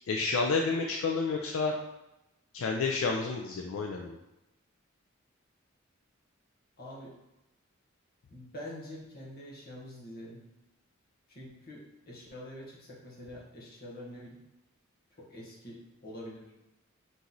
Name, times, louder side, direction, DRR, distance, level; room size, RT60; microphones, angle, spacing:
voice 1, 0.1-1.7 2.5-4.2, left 4 dB, 75° left, 1 dB, 0.4 m, -30 dB
voice 2, 6.8-7.1 8.3-10.4 11.3-14.4 15.1-16.5, left 1 dB, 50° left, -4 dB, 1.2 m, -46 dB
3.8 x 3.0 x 3.9 m, 0.94 s
head